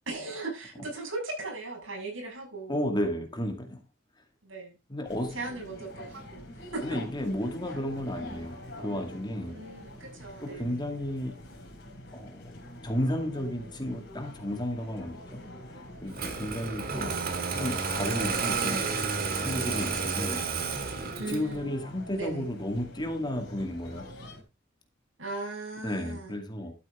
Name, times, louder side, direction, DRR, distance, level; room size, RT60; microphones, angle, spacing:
voice 1, 0.1-2.8 4.4-4.8 5.3-7.0 9.5-10.9 21.2-21.7 22.1-22.5 25.2-26.4, right 3 dB, 80° right, 6.3 m, -38 dB
voice 2, 2.7-3.8 4.9-5.3 6.8-9.5 10.4-11.4 12.1-12.4 12.8-15.4 15.7-19.0 19.4-20.5 21.3-24.0 25.8-26.7, left 1 dB, 25° left, 2.3 m, -33 dB
sound 1, 5.1-24.4, left 1 dB, 65° left, 4.8 m, -45 dB
Engine starting, 16.1-21.5, right 5 dB, 50° right, 1.9 m, -31 dB
12.5 x 8.2 x 3.6 m
head